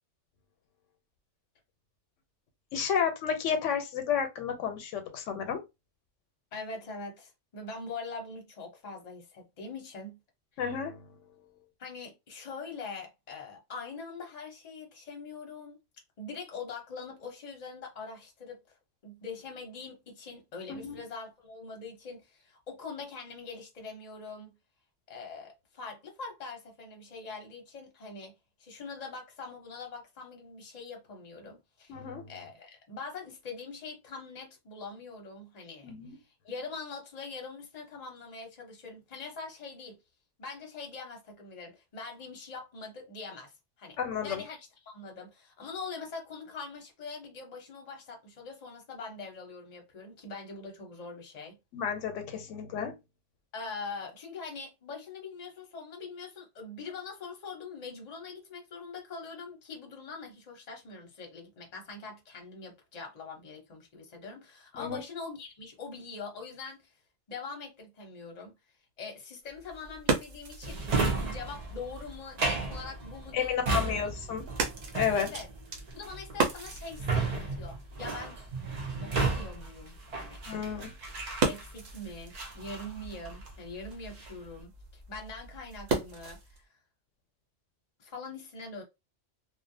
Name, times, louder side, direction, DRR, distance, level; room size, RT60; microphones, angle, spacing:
voice 1, 2.7-5.6 10.6-11.2 20.7-21.0 31.9-32.3 35.8-36.2 44.0-44.4 51.7-53.0 64.7-65.0 73.3-74.5 74.9-75.3 80.5-80.9, left 7 dB, 85° left, 0.9 m, -31 dB
voice 2, 6.5-10.2 11.8-15.8 16.2-18.6 19.0-24.5 25.1-28.3 28.6-32.0 32.3-40.0 40.4-51.6 53.5-66.9 67.3-68.5 69.0-70.8 71.2-73.9 75.2-75.5 75.9-78.4 79.0-80.4 81.4-86.7 88.0-88.8, left 4 dB, 40° left, 0.8 m, -43 dB
sound 1, 69.5-86.6, right 4 dB, 70° right, 1.0 m, -38 dB
Drawer open or close, 70.6-81.9 82.3-83.6 83.9-84.5, right 3 dB, 50° right, 0.5 m, -34 dB
2.4 x 2.1 x 2.6 m
omnidirectional pair, 1.2 m